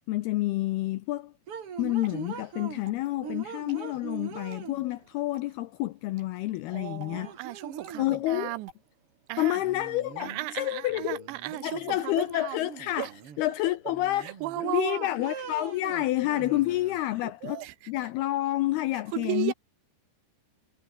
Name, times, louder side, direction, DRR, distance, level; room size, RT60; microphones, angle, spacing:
voice 1, 0.0-1.3 1.8-7.4 8.0-8.5 9.4-11.2 11.5-13.1 13.4-19.5, left 16 dB, 80° left, 2.3 m, -29 dB
sound 1, 1.5-2.9 3.2-5.1 6.6-6.7 7.1-8.2 9.6-10.6 10.9-12.1 12.6-13.5 13.9-14.8 15.2-17.0, right 7 dB, 40° right, 2.2 m, -42 dB
Water / Drip, 1.7-8.7, right 4 dB, 60° right, 10.0 m, -56 dB
voice 2, 6.7-8.7 9.3-9.6 10.2-12.6 13.0-13.1 14.2-15.1 17.2-17.7 19.1-19.5, right 18 dB, 80° right, 3.0 m, -35 dB
omnidirectional pair, 5.3 m